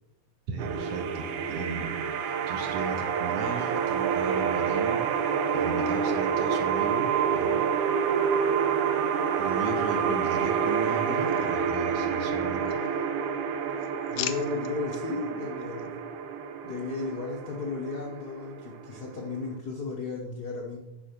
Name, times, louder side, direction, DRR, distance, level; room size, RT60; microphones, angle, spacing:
voice 1, 0.5-5.0 5.5-7.7 9.4-12.8, right 4 dB, 65° right, 3 dB, 2.1 m, -36 dB
sound 1, 0.6-19.6, right 7 dB, 90° right, 2.2 m, -28 dB
sound 2, 11.1-12.2 12.6-13.3 13.6-15.0 15.6-15.9, left 12 dB, 85° left, 2.0 m, -40 dB
voice 2, 14.1-15.9 16.6-20.8, left 3 dB, 65° left, -1 dB, 0.9 m, -34 dB
10.5 x 5.0 x 6.0 m, 0.96 s
omnidirectional pair, 3.4 m